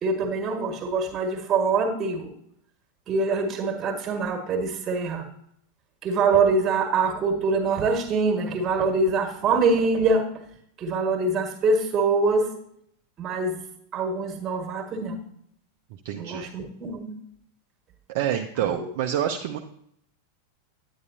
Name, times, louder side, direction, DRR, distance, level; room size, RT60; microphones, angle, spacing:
voice 1, 0.0-2.3 3.1-5.3 6.0-10.3 10.8-12.5 13.2-13.6 13.9-15.2 16.2-17.1 18.6-18.9, right 3 dB, 30° right, 4 dB, 1.6 m, -24 dB
voice 2, 16.0-16.5 18.1-19.6, right 10 dB, 50° right, 3 dB, 0.6 m, -27 dB
9.5 x 9.5 x 2.7 m, 0.70 s
figure-of-eight pair, 90°, 0 cm